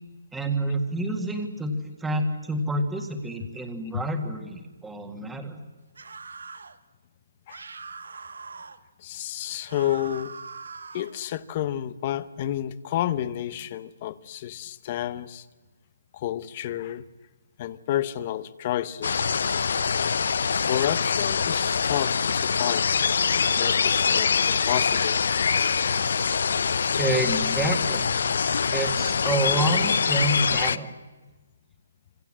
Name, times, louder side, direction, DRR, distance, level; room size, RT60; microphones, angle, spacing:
voice 1, 0.3-5.6 27.0-28.1 28.7-30.9, right 1 dB, 5° right, 5 dB, 1.8 m, -28 dB
sound 1, 5.9-6.8 7.5-8.8 9.7-11.2, right 4 dB, 80° right, 1.7 m, -41 dB
voice 2, 9.0-10.4 10.9-15.5 16.1-17.1 17.6-19.3 20.6-22.9 23.5-25.3, left 12 dB, 25° left, 16 dB, 0.9 m, -30 dB
sound 2, 19.0-30.8, left 6 dB, 55° left, 0.8 m, -24 dB
26.0 x 26.0 x 7.6 m, 1.2 s
hypercardioid pair, 175°, 0 cm